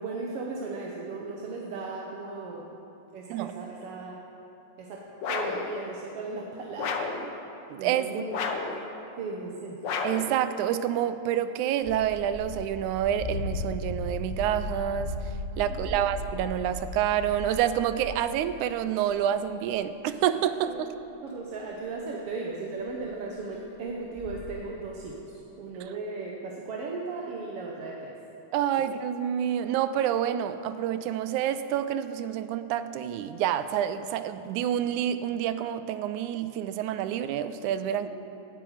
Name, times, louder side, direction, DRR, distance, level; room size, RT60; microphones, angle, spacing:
voice 1, 0.0-2.6 3.1-4.2 4.8-5.0 5.3-7.3 7.7-8.3 9.2-9.8 15.9-16.0 20.7-20.8 21.2-25.2 25.6-28.1 38.0-38.1, right 3 dB, 60° right, -2 dB, 1.8 m, -36 dB
sound 1, 5.2-5.7 6.8-7.2 8.3-8.8 9.8-10.3, left 5 dB, 85° left, 1.0 m, -31 dB
voice 2, 7.7-8.1 10.0-15.2 15.6-20.9 28.5-38.1, right 10 dB, 85° right, 12 dB, 2.0 m, -28 dB
sound 2, 11.8-18.3 19.0-19.5 19.8-19.9 20.6-20.7 21.7-21.8 22.1-22.2 22.8-23.0 23.3-23.4 23.5-23.6 24.0-24.4, left 1 dB, 25° right, 1.8 m, -36 dB
17.5 x 11.5 x 4.9 m, 2.9 s
omnidirectional pair, 3.4 m